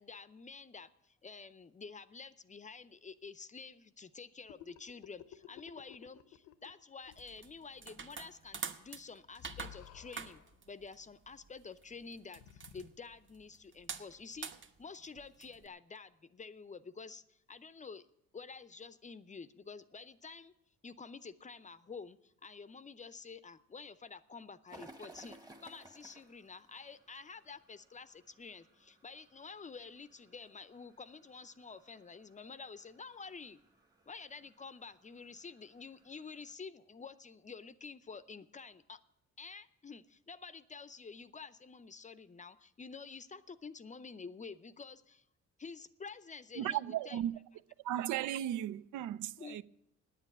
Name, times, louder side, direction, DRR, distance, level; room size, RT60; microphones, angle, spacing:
voice 1, 0.0-10.4 10.7-14.5 14.8-18.1 18.3-20.5 20.8-33.6 34.1-39.0 39.4-45.2 45.6-47.2 49.4-49.6, left 5 dB, 25° left, 0.6 m, -49 dB
sound 1, 4.5-6.8 7.1-7.2 9.4-10.6 12.3-12.9, left 11 dB, 85° left, 0.8 m, -54 dB
sound 2, 7.0-15.7, right 5 dB, 40° right, 1.0 m, -47 dB
sound 3, 24.7-36.5, right 1 dB, 10° right, 1.2 m, -61 dB
voice 2, 46.6-47.3 47.8-49.6, right 12 dB, 75° right, 0.5 m, -35 dB
9.7 x 8.3 x 9.7 m
cardioid pair, 90°, 30 cm